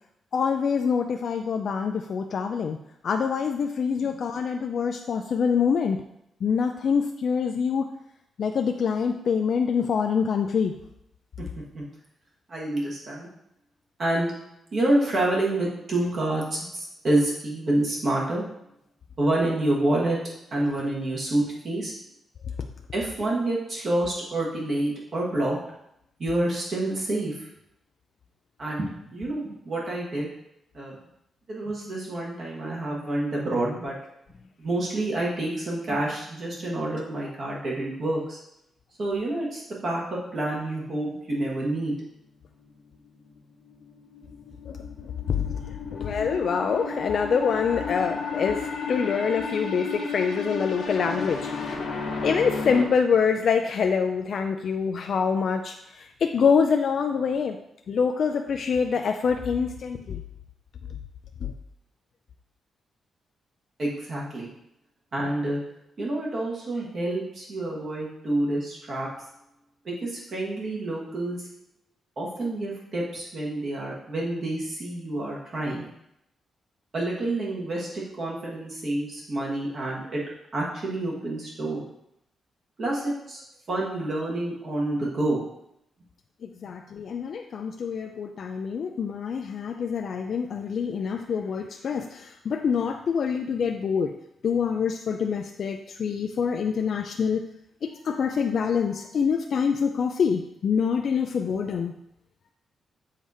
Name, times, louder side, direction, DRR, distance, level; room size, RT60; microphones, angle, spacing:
voice 1, 0.3-2.8 3.0-6.0 6.4-7.9 8.4-10.7 44.7-51.5 52.2-57.6 57.9-60.2 60.9-61.0 61.4-61.5 86.4-94.1 94.4-97.5 97.8-101.9, left 6 dB, 55° left, 5 dB, 0.3 m, -25 dB
voice 2, 12.5-13.3 14.0-14.3 14.7-18.4 19.2-21.9 22.9-25.6 26.2-27.5 28.6-30.3 30.7-31.0 31.5-34.0 34.6-38.4 39.0-41.9 63.8-64.5 65.1-65.6 66.0-69.1 69.8-71.5 72.2-75.8 76.9-80.2 80.5-81.8 82.8-83.4 83.7-85.5, right 1 dB, 45° right, -4 dB, 1.4 m, -28 dB
sound 1, 43.7-52.8, left 5 dB, 75° left, 1.0 m, -33 dB
7.2 x 2.8 x 4.8 m, 0.80 s
cardioid pair, 135°, 0 cm